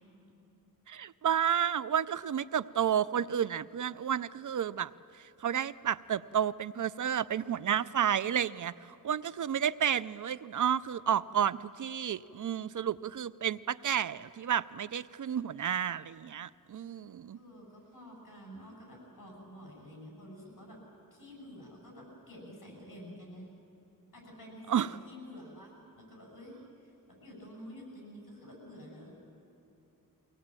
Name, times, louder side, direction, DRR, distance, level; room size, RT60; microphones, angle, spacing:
voice 1, 0.9-4.9 5.2-17.4 24.7-24.9, right 9 dB, 55° right, 17 dB, 0.5 m, -31 dB
voice 2, 17.3-20.8 21.1-23.5 24.1-29.2, equal, 60° left, 0 dB, 7.8 m, -49 dB
24.0 x 18.0 x 8.9 m, 2.9 s
cardioid pair, 75°, 36 cm